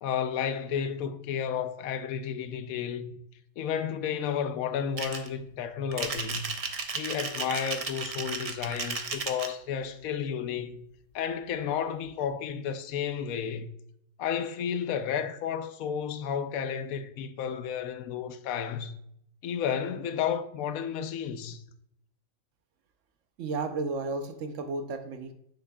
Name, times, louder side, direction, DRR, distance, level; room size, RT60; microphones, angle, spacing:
voice 1, 0.0-3.2 3.6-6.5 6.9-10.8 11.1-13.7 14.2-18.9 19.4-21.6, left 8 dB, 85° left, 1.0 m, -32 dB
sound 1, 5.0-5.3 5.9-9.5, right 4 dB, 45° right, 0.5 m, -34 dB
voice 2, 23.4-25.3, right 3 dB, 65° right, 1.0 m, -33 dB
7.2 x 6.4 x 2.3 m
omnidirectional pair, 1.4 m